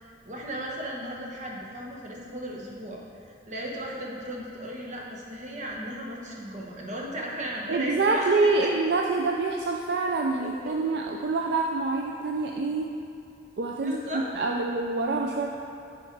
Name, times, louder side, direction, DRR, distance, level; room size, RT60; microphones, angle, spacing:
voice 1, 0.0-8.7 10.4-10.8 13.8-14.3, equal, 40° right, -2 dB, 1.1 m, -36 dB
voice 2, 7.7-12.9 13.6-14.0 14.3-15.6, right 3 dB, 60° right, 0 dB, 0.4 m, -26 dB
9.3 x 4.4 x 4.6 m, 2.7 s
head